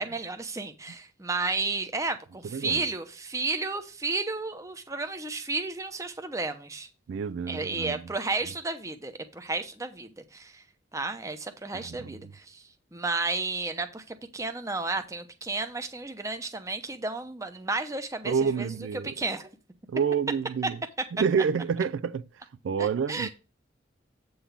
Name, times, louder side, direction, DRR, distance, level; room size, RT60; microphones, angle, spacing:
voice 1, 0.0-6.9 7.5-10.6 10.9-12.6 12.9-18.7 19.0-19.5 22.8-23.3, right 3 dB, 15° right, 0.8 m, -32 dB
voice 2, 2.4-2.8 7.1-8.0 11.7-12.3 18.3-19.1 19.9-20.8 21.1-22.3 22.6-23.3, right 6 dB, 80° right, 0.3 m, -28 dB
8.4 x 3.9 x 6.8 m
head